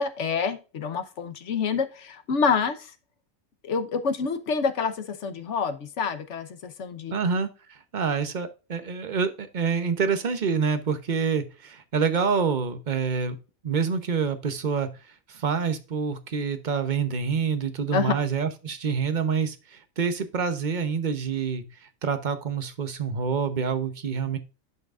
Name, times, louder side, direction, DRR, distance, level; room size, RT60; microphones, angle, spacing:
voice 1, 0.0-2.9 3.6-7.1 17.9-18.1, left 5 dB, 60° left, 10 dB, 1.2 m, -27 dB
voice 2, 7.1-13.4 13.6-24.4, right 6 dB, 40° right, 9 dB, 0.9 m, -27 dB
10.5 x 5.8 x 2.5 m, 0.32 s
omnidirectional pair, 1.4 m